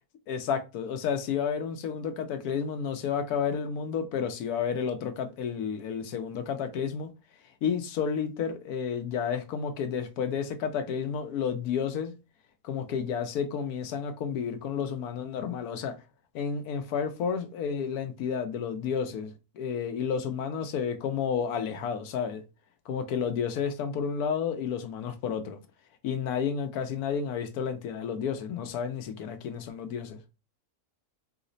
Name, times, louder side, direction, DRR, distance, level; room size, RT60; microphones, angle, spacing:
voice 1, 0.3-7.1 7.6-12.1 12.6-15.9 16.3-22.4 22.9-25.6 26.0-30.2, left 7 dB, 80° left, 1.1 m, -31 dB
3.2 x 2.0 x 3.8 m
omnidirectional pair, 1.6 m